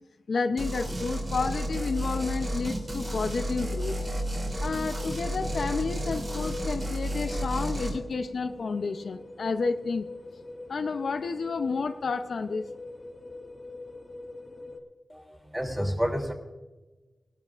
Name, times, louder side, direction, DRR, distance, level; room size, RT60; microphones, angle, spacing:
voice 1, 0.3-4.0 4.6-10.1 10.7-12.7, left 4 dB, 65° left, 8 dB, 0.6 m, -30 dB
sound 1, 0.6-14.8, left 2 dB, 30° left, 2.0 m, -42 dB
sound 2, 0.6-8.0, right 1 dB, 35° right, 3.3 m, -32 dB
voice 2, 15.1-16.3, equal, 5° right, 1 dB, 2.9 m, -30 dB
20.5 x 12.5 x 2.5 m, 1.1 s
wide cardioid pair, 130°, 0 cm